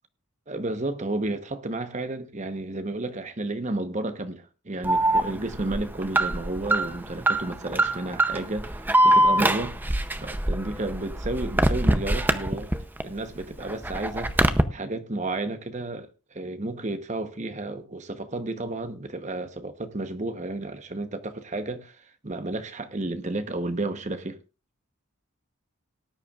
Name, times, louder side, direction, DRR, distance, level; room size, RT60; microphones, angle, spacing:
voice 1, 0.5-12.7 13.0-14.3 14.7-24.4, right 2 dB, 35° right, 1.0 m, -32 dB
Alarm, 4.8-13.0 13.4-14.6, right 1 dB, 10° right, 0.6 m, -23 dB
18.5 x 9.9 x 2.4 m
head